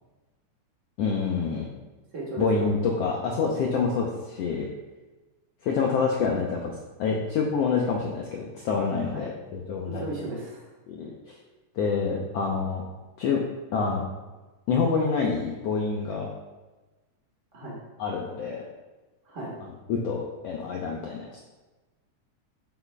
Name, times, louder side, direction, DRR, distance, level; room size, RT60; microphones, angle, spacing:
voice 1, 1.0-1.7 2.4-4.7 5.6-6.7 7.0-10.1 10.9-11.1 11.8-12.8 13.2-13.4 13.7-14.0 14.7-16.3 18.0-18.6 19.6-21.4, left 5 dB, 85° left, -1 dB, 1.4 m, -27 dB
voice 2, 2.1-2.7 9.1-9.3 10.0-10.7 17.5-17.8 19.3-19.5, right 2 dB, 50° right, -3 dB, 0.9 m, -35 dB
8.3 x 8.0 x 2.2 m, 1.2 s
omnidirectional pair, 3.7 m